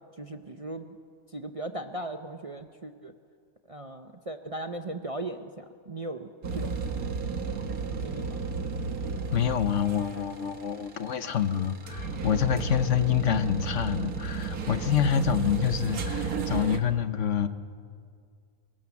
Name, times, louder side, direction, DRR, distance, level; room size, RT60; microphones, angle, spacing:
voice 1, 0.2-1.0 1.3-3.1 3.7-6.7 7.9-8.4, right 2 dB, 30° right, 7 dB, 0.7 m, -38 dB
sound 1, 6.4-16.8, right 4 dB, 85° right, 1.9 m, -33 dB
voice 2, 9.3-17.5, left 8 dB, 60° left, 11 dB, 1.2 m, -27 dB
25.0 x 21.5 x 7.2 m, 2.1 s
omnidirectional pair, 1.5 m